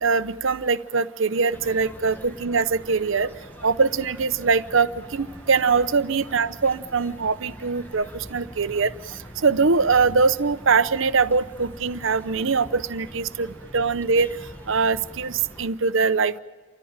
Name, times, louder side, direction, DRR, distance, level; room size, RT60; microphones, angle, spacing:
voice 1, 0.0-3.3 3.6-14.3 14.7-16.4, right 4 dB, 65° right, 13 dB, 0.8 m, -22 dB
sound 1, 1.5-15.7, equal, 10° left, 1.2 m, -43 dB
29.0 x 14.0 x 8.9 m, 1.5 s
head